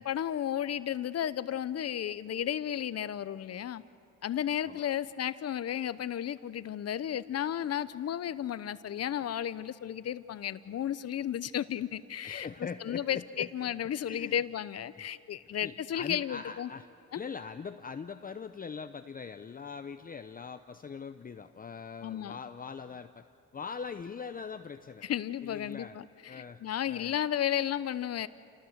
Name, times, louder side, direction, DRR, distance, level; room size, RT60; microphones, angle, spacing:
voice 1, 0.0-3.8 4.2-12.5 12.8-16.7 17.1-17.2 22.0-22.4 25.0-28.3, left 10 dB, 55° left, 15 dB, 0.9 m, -33 dB
voice 2, 4.6-4.9 12.2-13.7 14.1-14.4 14.9-15.0 15.6-16.9 17.1-23.2 23.5-25.0 25.4-26.0 26.3-27.1, left 5 dB, 30° left, 9 dB, 0.7 m, -42 dB
29.0 x 18.0 x 8.1 m, 2.6 s
cardioid pair, 90°, 30 cm